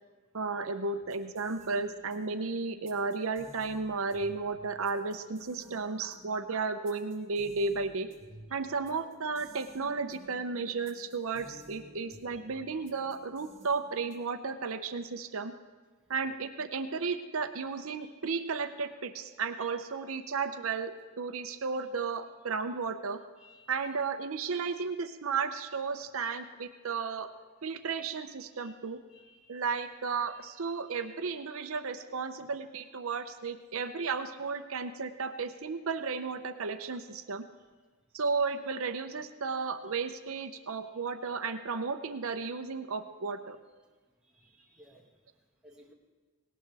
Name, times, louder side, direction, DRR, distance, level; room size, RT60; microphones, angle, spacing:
voice 1, 0.3-8.1 8.5-15.5 16.1-20.9 21.2-23.2 23.7-27.3 27.6-29.0 29.5-37.4 38.1-43.6, right 4 dB, 70° right, 8 dB, 0.7 m, -34 dB
sound 1, 1.0-14.4, right 1 dB, 40° right, 3.8 m, -55 dB
voice 2, 23.4-23.9 27.1-27.2 28.5-28.8 29.1-29.9 30.3-31.2 32.4-32.5 44.3-45.1 45.6-45.9, right 1 dB, 5° right, -3 dB, 1.8 m, -59 dB
18.5 x 18.0 x 3.4 m, 1.3 s
head